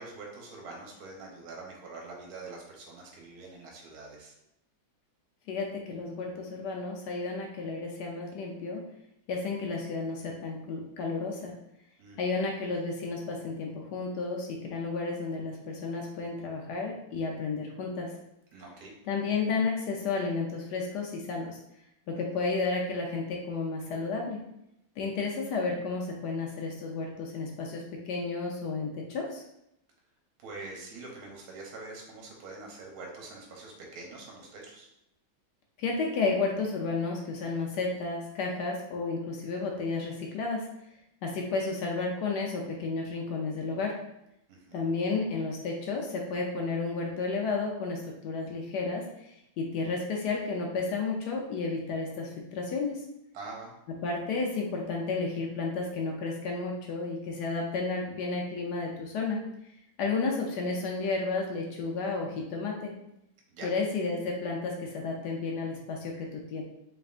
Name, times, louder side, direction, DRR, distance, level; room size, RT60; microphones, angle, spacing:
voice 1, 0.0-4.3 12.0-12.2 18.5-18.9 30.4-34.9 44.5-44.8 53.3-53.7 63.5-63.7, right 3 dB, 60° right, -1 dB, 1.2 m, -44 dB
voice 2, 5.5-8.8 9.3-11.6 12.2-18.1 19.1-21.6 22.1-24.4 25.0-29.4 35.8-40.7 41.2-44.0 44.7-49.3 49.6-53.0 54.0-59.4 60.0-62.9 63.6-66.6, left 4 dB, 70° left, 0 dB, 1.1 m, -32 dB
4.1 x 3.4 x 2.4 m, 0.82 s
omnidirectional pair, 2.2 m